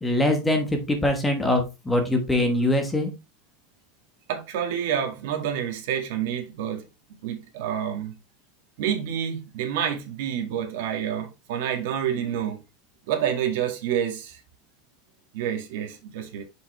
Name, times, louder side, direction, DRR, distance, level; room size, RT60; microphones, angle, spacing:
voice 1, 0.0-3.1, left 1 dB, 5° left, 1.2 m, -23 dB
voice 2, 4.3-6.8 7.2-8.1 8.8-12.6 13.1-14.4 15.3-16.4, right 9 dB, 65° right, 1.8 m, -28 dB
6.7 x 5.4 x 3.3 m
supercardioid pair, 165°, 0 cm